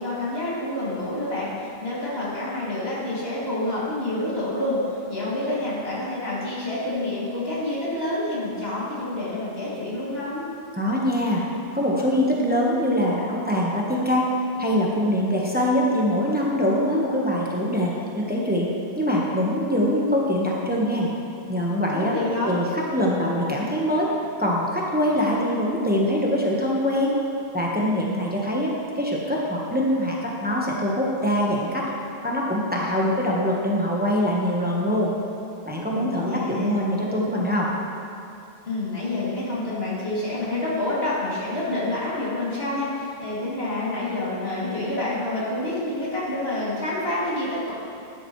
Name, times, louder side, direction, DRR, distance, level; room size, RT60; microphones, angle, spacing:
voice 1, 0.0-4.8 5.1-10.4 21.9-22.6 35.9-36.8 38.6-47.7, left 1 dB, 75° left, -8 dB, 3.0 m, -28 dB
voice 2, 10.7-11.4 11.7-14.3 14.6-18.7 19.0-21.1 21.5-22.1 22.4-24.1 24.4-27.1 27.5-31.9 32.2-35.1 35.7-37.7, equal, 10° right, -4 dB, 1.2 m, -23 dB
12.5 x 10.0 x 3.2 m, 2.8 s
omnidirectional pair, 1.0 m